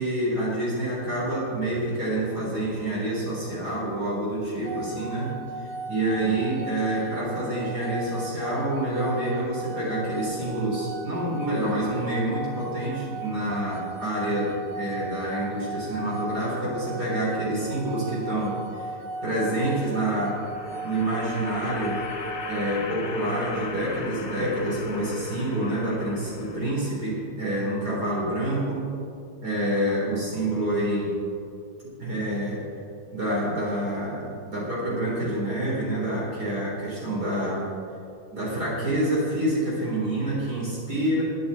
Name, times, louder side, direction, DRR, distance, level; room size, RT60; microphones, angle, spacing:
voice 1, 0.0-19.0 19.2-20.4 20.8-22.0 22.5-28.9 29.4-31.1 32.0-32.6 33.1-37.7 38.3-41.2, right 1 dB, 45° right, -6 dB, 4.2 m, -27 dB
sound 1, 4.6-22.7, right 2 dB, 80° right, 1.8 m, -37 dB
sound 2, 20.0-27.1, left 4 dB, 50° left, 1.3 m, -37 dB
22.0 x 10.0 x 4.2 m, 2.5 s
omnidirectional pair, 2.4 m